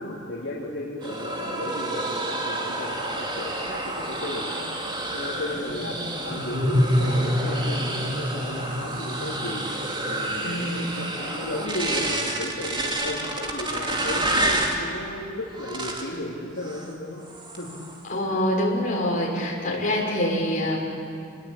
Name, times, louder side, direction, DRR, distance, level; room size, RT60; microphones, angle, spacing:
voice 1, 0.0-4.6 5.1-9.7 10.0-17.3 17.6-17.8 18.3-18.4, left 1 dB, 65° left, -5 dB, 3.4 m, -35 dB
sound 1, 1.0-14.8 15.5-16.2 16.6-16.9 17.3-18.0, right 2 dB, 25° right, 2.7 m, -30 dB
sound 2, 5.5-10.8, left 1 dB, 45° right, 4.5 m, -27 dB
voice 2, 10.4-11.0 18.1-20.8, left 1 dB, 40° left, -2 dB, 6.3 m, -25 dB
29.0 x 21.0 x 8.7 m, 2.4 s
head